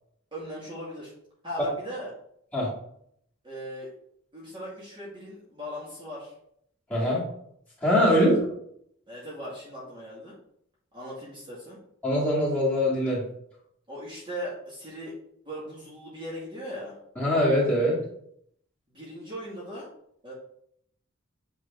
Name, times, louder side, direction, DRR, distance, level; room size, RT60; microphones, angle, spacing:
voice 1, 0.3-1.1 1.4-2.1 3.4-3.9 4.3-6.3 8.2-8.3 9.1-10.4 10.9-11.8 13.9-15.1 15.5-17.0 18.9-19.9 20.2-20.3, equal, 25° right, -7 dB, 1.9 m, -38 dB
voice 2, 6.9-7.2 7.8-8.4 12.0-13.2 17.2-18.0, equal, 10° left, -8 dB, 2.4 m, -22 dB
8.1 x 3.4 x 3.6 m, 0.70 s
head